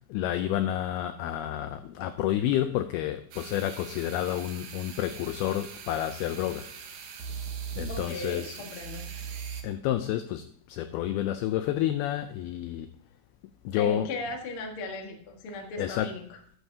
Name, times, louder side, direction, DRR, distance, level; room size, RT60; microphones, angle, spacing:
voice 1, 0.0-6.7 7.8-8.6 9.6-12.9 13.7-14.1 15.8-16.1, left 12 dB, 80° left, 9 dB, 2.3 m, -30 dB
sound 1, 3.3-9.6, right 7 dB, 65° right, 2.1 m, -40 dB
voice 2, 7.9-9.1 13.8-16.4, left 2 dB, 55° left, 2 dB, 1.6 m, -37 dB
13.5 x 11.5 x 2.8 m, 0.62 s
omnidirectional pair, 4.9 m